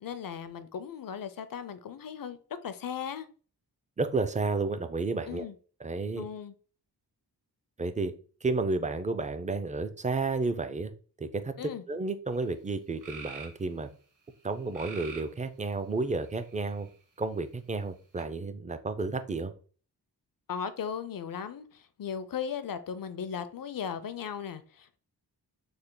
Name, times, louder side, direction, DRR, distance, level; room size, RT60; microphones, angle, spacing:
voice 1, 0.0-2.4 2.6-3.3 5.3-5.5 6.2-6.5 11.6-11.8 20.5-25.0, left 7 dB, 55° left, 0.5 m, -37 dB
voice 2, 4.0-5.5 5.8-6.3 7.8-8.1 8.4-10.9 11.2-11.5 11.9-13.9 14.4-16.9 17.2-19.5, right 3 dB, 20° right, 0.3 m, -31 dB
sound 1, 12.4-12.5 13.0-13.6 14.7-15.4 16.2-16.9 18.2-18.3, right 5 dB, 50° right, 1.0 m, -44 dB
3.3 x 2.1 x 3.7 m
wide cardioid pair, 60°, 40 cm